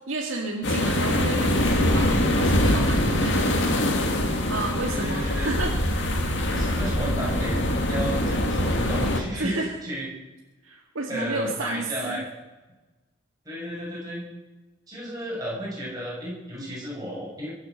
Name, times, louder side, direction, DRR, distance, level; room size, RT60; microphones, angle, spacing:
voice 1, 0.1-3.7 4.5-5.7 9.4-9.8 10.6-12.2, right 2 dB, 80° right, -1 dB, 2.0 m, -31 dB
sound 1, 0.6-9.2, left 1 dB, 60° left, 2.3 m, -23 dB
voice 2, 4.9-5.5 6.4-10.1 11.1-12.2 13.4-14.3 14.9-17.6, equal, 20° right, -5 dB, 7.3 m, -33 dB
22.5 x 8.6 x 6.7 m, 1.1 s
head